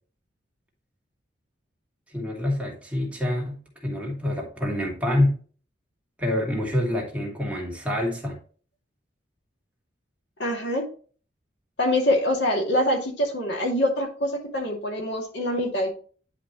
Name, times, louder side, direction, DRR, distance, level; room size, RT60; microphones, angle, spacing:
voice 1, 2.1-3.6 3.8-5.4 6.2-8.4, left 1 dB, 5° right, -2 dB, 2.5 m, -26 dB
voice 2, 10.4-10.8 11.8-15.9, left 1 dB, 65° left, 1 dB, 2.5 m, -24 dB
10.5 x 5.1 x 3.1 m, 0.40 s
head